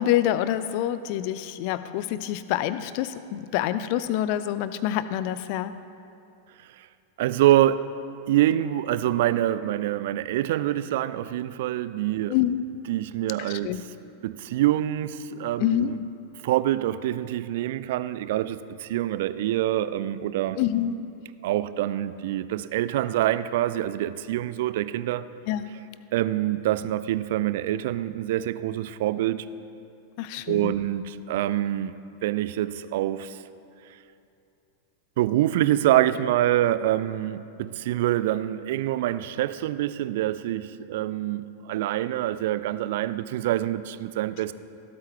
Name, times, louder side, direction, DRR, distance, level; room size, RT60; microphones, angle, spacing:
voice 1, 0.0-5.7 12.3-12.6 13.4-13.8 15.6-15.9 20.6-20.9 25.5-25.7 30.2-30.7, left 12 dB, 45° left, 13 dB, 0.4 m, -26 dB
voice 2, 7.2-7.9 8.3-12.3 12.9-13.7 14.2-16.0 16.4-20.6 21.4-25.3 26.1-29.5 30.5-31.9 32.2-33.4 33.8-34.0 35.2-44.5, right 13 dB, 55° right, 14 dB, 0.4 m, -25 dB
17.0 x 8.3 x 3.3 m, 2.7 s
figure-of-eight pair, 90°, 0 cm